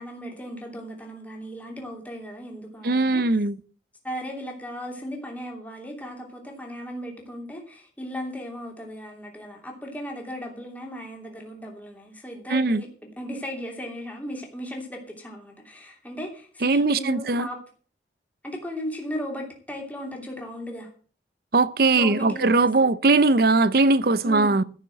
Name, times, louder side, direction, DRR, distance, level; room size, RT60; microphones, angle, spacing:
voice 1, 0.0-3.2 4.0-17.6 18.4-20.9 21.9-22.9 24.2-24.6, equal, 10° left, 3.0 m, -36 dB
voice 2, 2.8-3.6 12.5-12.8 16.6-17.5 21.5-24.6, right 3 dB, 55° right, 0.7 m, -20 dB
14.0 x 6.7 x 7.8 m
head